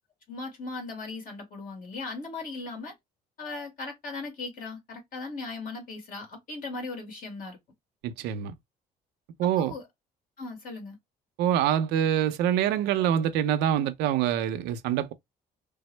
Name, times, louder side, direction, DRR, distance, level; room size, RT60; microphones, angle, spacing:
voice 1, 0.3-2.9 3.4-7.6 9.4-9.9 10.4-11.0, left 3 dB, 55° left, 1.9 m, -38 dB
voice 2, 8.0-8.5 9.4-9.7 11.4-15.1, right 10 dB, 90° right, 0.6 m, -25 dB
3.4 x 2.0 x 3.2 m
cardioid pair, 110°, 17 cm